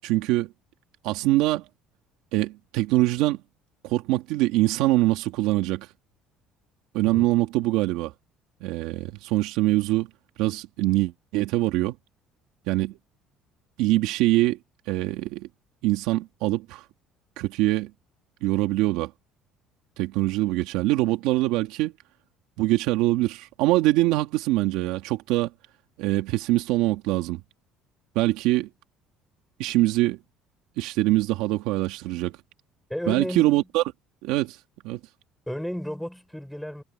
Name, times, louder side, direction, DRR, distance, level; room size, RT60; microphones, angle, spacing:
voice 1, 0.0-0.5 1.0-1.6 2.3-3.4 3.8-5.9 6.9-8.1 8.6-10.1 10.4-11.9 12.7-13.0 13.8-14.6 14.9-15.5 15.8-16.8 17.4-17.9 18.4-19.1 20.0-21.9 22.6-25.5 26.0-27.4 28.2-28.7 29.6-30.2 30.8-32.4 33.1-33.8 34.2-34.6 34.8-35.0, right 17 dB, 80° right, 2.3 m, -23 dB
voice 2, 32.9-33.7 35.5-36.8, equal, ahead, 5.9 m, -33 dB
cardioid pair, 155°, 0 cm